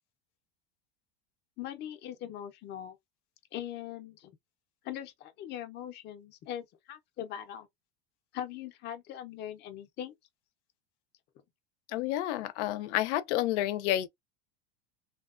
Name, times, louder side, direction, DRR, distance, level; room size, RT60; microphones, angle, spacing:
voice 1, 1.6-3.0 3.5-4.3 4.8-7.7 8.3-10.1, left 11 dB, 30° left, 0.5 m, -41 dB
voice 2, 11.9-14.1, left 13 dB, 90° left, 0.5 m, -30 dB
2.8 x 2.2 x 2.4 m
supercardioid pair, 145°, 34 cm